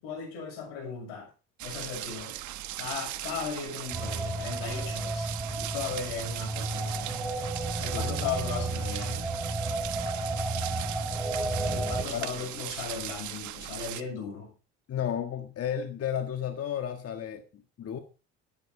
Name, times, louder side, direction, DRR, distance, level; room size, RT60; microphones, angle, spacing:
voice 1, 0.0-1.3 1.6-2.4 2.8-7.2 7.8-9.3 11.7-14.5, left 6 dB, 80° left, 4 dB, 6.7 m, -37 dB
sound 1, 1.6-14.0, right 14 dB, 55° right, 1.2 m, -38 dB
sound 2, 3.9-12.0, right 2 dB, 5° right, 4.5 m, -32 dB
voice 2, 12.1-12.7 14.9-18.0, left 9 dB, 40° left, 7 dB, 1.6 m, -33 dB
13.0 x 10.5 x 4.4 m, 0.33 s
supercardioid pair, 80°, 35 cm